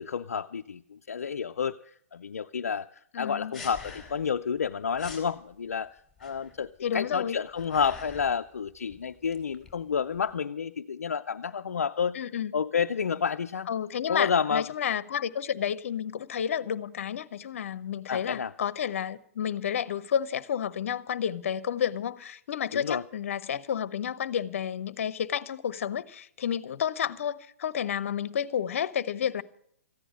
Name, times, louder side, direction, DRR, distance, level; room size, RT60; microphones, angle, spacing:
voice 1, 0.0-2.9 3.2-12.2 12.5-13.7 14.1-14.7 18.1-18.5 22.7-23.0, left 6 dB, 80° left, 0.5 m, -30 dB
voice 2, 3.1-3.5 6.8-7.4 12.1-12.5 13.7-29.4, left 8 dB, 65° left, 0.8 m, -31 dB
sound 1, 3.5-4.4 4.6-4.7 5.0-5.3 6.2-6.7 7.3-8.4 8.7-10.3, left 4 dB, ahead, 4.1 m, -45 dB
14.5 x 10.0 x 7.6 m
hypercardioid pair, 125°, 8 cm